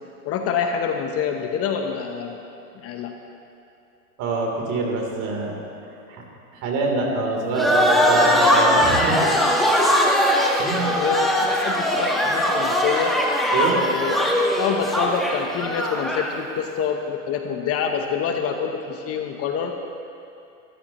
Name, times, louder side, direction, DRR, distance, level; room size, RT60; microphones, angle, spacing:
voice 1, 0.3-2.4 2.8-3.1 10.9-11.3 11.6-13.2 13.9-14.1 14.6-19.7, left 7 dB, 35° left, 4 dB, 1.0 m, -26 dB
voice 2, 4.2-5.5 6.1-6.2 6.6-9.2 10.6-11.1 11.4-11.5 13.5-13.8, right 3 dB, 45° right, -1 dB, 3.4 m, -25 dB
sound 1, 7.6-16.3, equal, ahead, 1.4 m, -20 dB
23.0 x 13.5 x 3.1 m, 2.7 s
hypercardioid pair, 120°, 44 cm